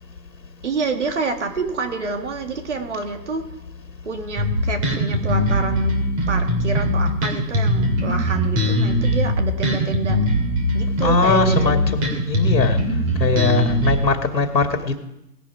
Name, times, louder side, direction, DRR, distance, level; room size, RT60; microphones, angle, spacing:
voice 1, 0.6-3.4 4.0-5.9 6.3-10.2 10.7-12.0, right 4 dB, 45° right, 5 dB, 2.0 m, -27 dB
Bass guitar, 4.4-14.0, equal, 20° right, 2.7 m, -20 dB
voice 2, 11.0-12.8 13.2-15.0, left 4 dB, 85° left, 5 dB, 2.3 m, -21 dB
18.0 x 11.0 x 4.7 m, 0.87 s
hypercardioid pair, 160°, 49 cm